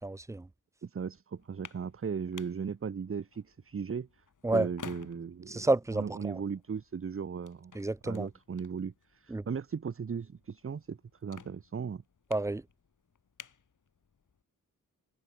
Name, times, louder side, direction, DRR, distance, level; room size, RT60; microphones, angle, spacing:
voice 1, 0.0-0.5 4.4-4.7 5.5-6.4 7.7-8.3 9.3-9.5 12.3-12.6, right 2 dB, 10° right, 0.3 m, -30 dB
voice 2, 0.8-4.2 4.5-5.7 5.9-7.7 8.0-12.0, right 6 dB, 40° right, 0.7 m, -37 dB
sound 1, 1.3-14.4, left 6 dB, 60° left, 2.1 m, -54 dB
cardioid pair, 50°, 35 cm